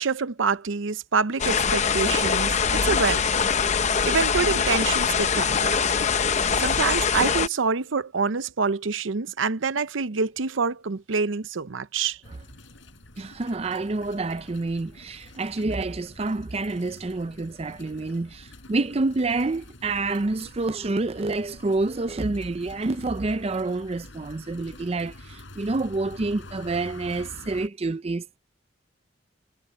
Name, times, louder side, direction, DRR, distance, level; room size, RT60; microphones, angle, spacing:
voice 1, 0.0-3.2 4.0-5.8 6.5-12.2, right 5 dB, 90° right, 0.7 m, -26 dB
sound 1, 1.4-7.5, left 6 dB, 35° left, 0.7 m, -23 dB
sound 2, 12.2-27.7, left 2 dB, 75° left, 4.6 m, -47 dB
voice 2, 13.2-28.4, right 3 dB, 30° right, 0.5 m, -28 dB
head